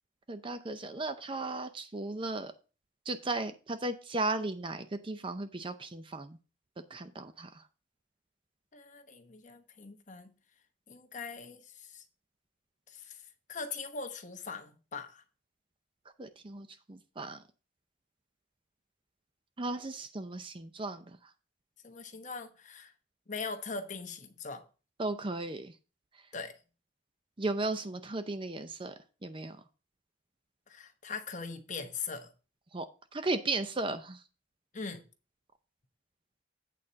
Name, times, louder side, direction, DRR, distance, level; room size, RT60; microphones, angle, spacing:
voice 1, 0.3-2.5 3.1-6.4 6.9-7.6 16.2-17.4 19.6-21.3 25.0-25.7 27.4-28.9 29.2-29.6 32.7-32.9 33.1-34.2, right 2 dB, 25° right, 0.5 m, -36 dB
voice 2, 8.7-10.3 10.9-12.0 12.9-13.2 13.5-15.2 21.8-22.9 23.3-24.6 26.3-26.5 30.7-32.3 34.7-35.0, left 4 dB, 40° left, 1.0 m, -41 dB
8.7 x 4.2 x 6.2 m
head